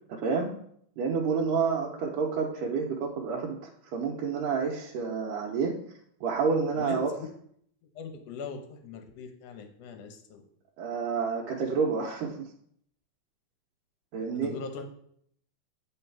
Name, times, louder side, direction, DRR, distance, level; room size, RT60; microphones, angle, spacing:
voice 1, 0.1-0.5 1.0-3.6 3.9-5.7 6.2-7.1 10.8-12.5 14.1-14.5, right 5 dB, 85° right, -2 dB, 2.3 m, -29 dB
voice 2, 6.8-7.3 7.8-10.4 14.3-14.8, left 5 dB, 65° left, 5 dB, 1.7 m, -40 dB
9.8 x 3.9 x 4.6 m, 0.67 s
omnidirectional pair, 3.7 m